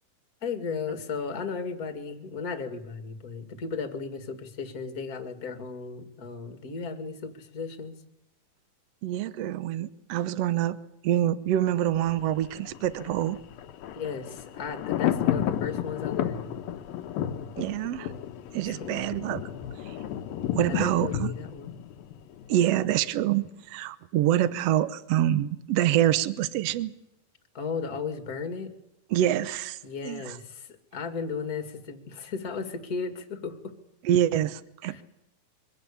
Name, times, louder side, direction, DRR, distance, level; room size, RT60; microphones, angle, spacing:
voice 1, 0.4-7.9 13.9-16.5 18.6-19.0 20.7-21.7 27.5-28.7 29.8-33.7 34.8-35.0, left 5 dB, 30° left, 6 dB, 2.1 m, -35 dB
voice 2, 9.0-10.8 11.0-13.4 17.6-18.1 18.5-19.4 19.9-20.0 20.5-21.3 22.5-26.9 29.1-29.8 30.0-30.2 34.0-35.0, right 12 dB, 85° right, 13 dB, 1.4 m, -26 dB
Thunder, 11.9-22.9 23.2-23.3, left 10 dB, 75° left, 2.8 m, -32 dB
24.0 x 17.0 x 8.6 m, 0.90 s
omnidirectional pair, 4.2 m